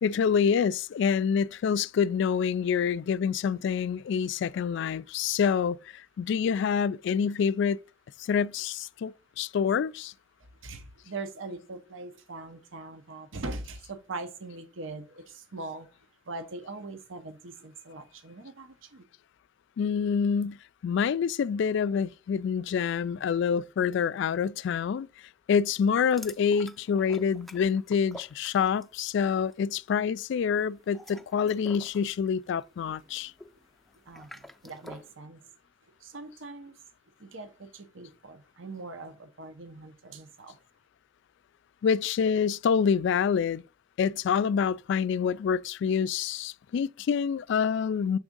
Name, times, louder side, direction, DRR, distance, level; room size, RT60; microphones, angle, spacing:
voice 1, 0.0-7.8 8.2-10.1 19.8-20.6 20.8-25.1 25.5-33.3 41.8-43.6 44.0-48.2, left 7 dB, 65° left, 0.3 m, -27 dB
voice 2, 10.6-15.9 16.3-19.0 34.1-34.3 34.6-35.4 36.0-36.8 37.2-40.6, right 3 dB, 75° right, 0.8 m, -41 dB
sound 1, 26.1-29.0 29.3-29.6 30.8-35.1, equal, ahead, 0.5 m, -49 dB
6.9 x 3.5 x 5.2 m
head